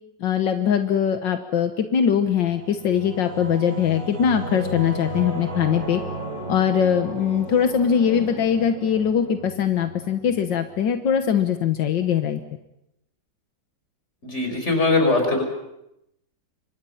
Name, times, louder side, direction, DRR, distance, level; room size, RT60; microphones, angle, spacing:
voice 1, 0.2-6.0 6.5-12.4, left 8 dB, 85° left, 7 dB, 1.9 m, -22 dB
Singing / Musical instrument, 2.2-11.4, right 1 dB, 45° right, 6.3 m, -34 dB
voice 2, 14.2-15.4, left 3 dB, 40° left, 4 dB, 5.8 m, -21 dB
29.0 x 24.5 x 5.7 m, 0.84 s
omnidirectional pair, 1.9 m